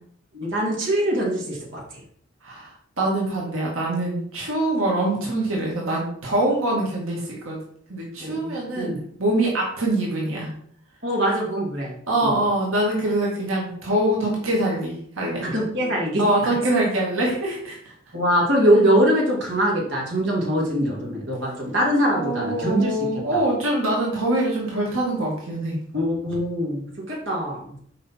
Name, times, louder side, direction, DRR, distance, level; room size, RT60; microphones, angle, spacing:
voice 1, 0.3-1.8 8.2-9.0 11.0-12.0 12.2-12.3 15.4-16.5 18.1-23.1 25.9-27.6, equal, 60° right, -3 dB, 2.4 m, -23 dB
voice 2, 2.4-7.6 7.9-10.5 12.1-15.5 16.2-18.1 22.1-25.8, right 1 dB, 85° right, -3 dB, 2.1 m, -24 dB
6.5 x 5.2 x 4.5 m, 0.63 s
head